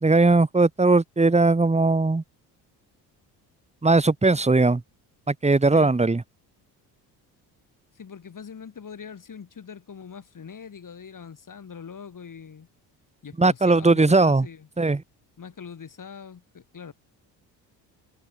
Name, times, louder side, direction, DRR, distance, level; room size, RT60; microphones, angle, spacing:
voice 1, 0.0-2.2 3.8-4.8 5.3-6.2 13.4-14.5 14.8-15.0, right 3 dB, 15° right, 1.8 m, -19 dB
voice 2, 7.9-12.7 13.2-14.7 15.4-16.9, left 6 dB, 40° left, 6.1 m, -42 dB
hypercardioid pair, 55°, 50 cm